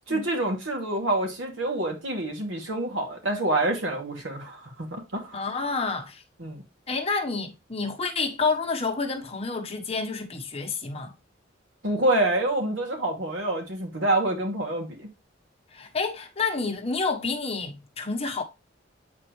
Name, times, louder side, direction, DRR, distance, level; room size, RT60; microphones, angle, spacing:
voice 1, 0.1-5.5 6.4-6.6 11.8-15.1, right 2 dB, 80° right, 2.5 m, -27 dB
voice 2, 5.3-6.2 6.9-11.1 15.7-18.4, left 4 dB, 30° left, 1.1 m, -29 dB
8.9 x 4.4 x 3.1 m
head